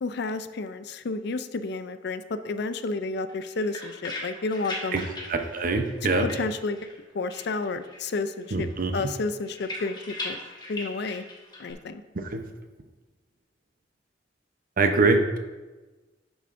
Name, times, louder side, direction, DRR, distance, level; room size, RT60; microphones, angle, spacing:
voice 1, 0.0-5.1 6.0-6.8 7.1-10.4 10.7-11.2 11.6-12.0, left 3 dB, 65° left, 11 dB, 0.5 m, -31 dB
sound 1, 3.3-7.0 7.3-8.2 8.5-11.7, left 2 dB, 25° left, 1.3 m, -39 dB
voice 2, 5.3-6.3 8.5-8.9 12.3-12.4 14.8-15.4, right 3 dB, 50° right, 6 dB, 0.8 m, -23 dB
11.0 x 6.9 x 2.6 m, 1.2 s
head